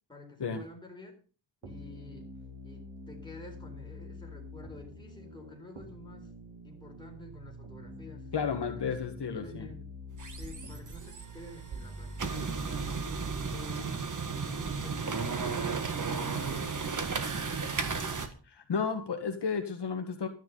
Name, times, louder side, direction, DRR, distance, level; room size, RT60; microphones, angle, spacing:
voice 1, 0.1-1.1 1.6-2.3 2.6-6.3 6.6-8.3 8.6-9.0 9.3-9.9 10.3-13.1 13.5-14.0 14.4-15.1 15.4-16.8 17.3-18.2, left 2 dB, 10° left, 0 dB, 4.1 m, -50 dB
sound 1, 1.6-13.6, equal, 90° right, 4.1 m, -45 dB
voice 2, 8.3-9.7 18.6-20.3, left 6 dB, 60° left, 5 dB, 1.6 m, -32 dB
sound 2, 10.1-18.3, right 5 dB, 40° right, 1.7 m, -34 dB
12.5 x 10.5 x 5.5 m, 0.38 s
wide cardioid pair, 165°, 46 cm